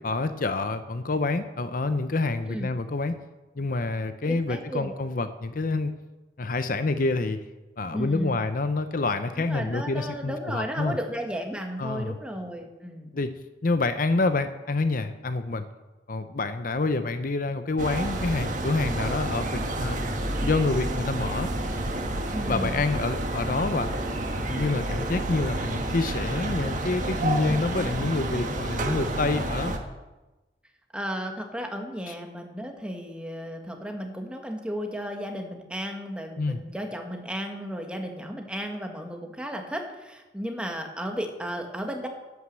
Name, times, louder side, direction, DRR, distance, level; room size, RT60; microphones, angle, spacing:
voice 1, 0.0-3.2 3.6-5.9 6.4-7.4 7.8-11.0 11.8-12.2 13.1-13.3 13.6-15.7 16.1-20.0 20.4-21.5 22.5-23.9 24.5-29.7 32.1-32.2 36.4-36.6, left 3 dB, 50° left, 10 dB, 0.7 m, -27 dB
voice 2, 4.3-4.9 7.9-8.4 9.3-13.1 22.3-22.8 30.9-42.1, equal, 5° right, 3 dB, 1.6 m, -34 dB
sound 1, 17.8-29.8, right 1 dB, 45° right, 1.5 m, -29 dB
11.5 x 9.4 x 7.6 m, 1.1 s
head